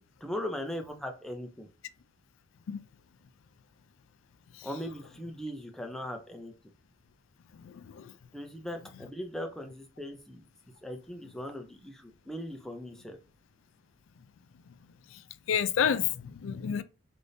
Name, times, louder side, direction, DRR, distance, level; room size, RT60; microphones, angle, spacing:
voice 1, 0.0-1.7 4.6-6.5 8.3-10.4 10.8-13.2, equal, ahead, 0.4 m, -39 dB
voice 2, 7.5-8.1 14.7-14.8 15.1-16.8, left 8 dB, 70° left, 0.3 m, -31 dB
3.4 x 2.6 x 2.6 m
head